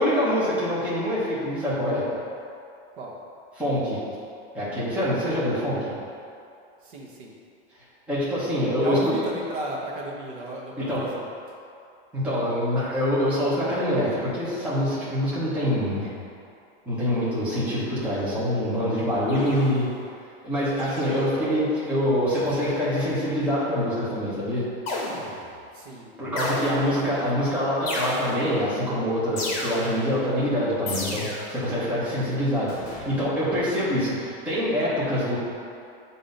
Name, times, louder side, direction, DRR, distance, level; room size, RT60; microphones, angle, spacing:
voice 1, 0.0-2.0 3.6-4.0 4.5-5.9 8.1-9.0 10.8-11.0 12.1-16.1 16.9-19.9 20.4-24.7 26.2-35.4, equal, 5° right, -10 dB, 0.9 m, -25 dB
voice 2, 6.8-7.3 8.8-11.2 25.7-26.1 26.4-26.6 27.0-27.4, right 2 dB, 55° right, -2 dB, 1.0 m, -34 dB
sound 1, 19.3-20.0 20.8-21.4 22.3-22.9 24.9-25.6 26.4-27.1 27.9-28.6 29.4-30.2 30.9-31.7 32.7-33.1, left 1 dB, 30° left, 1.1 m, -33 dB
7.4 x 2.7 x 5.1 m, 2.5 s
supercardioid pair, 180°, 31 cm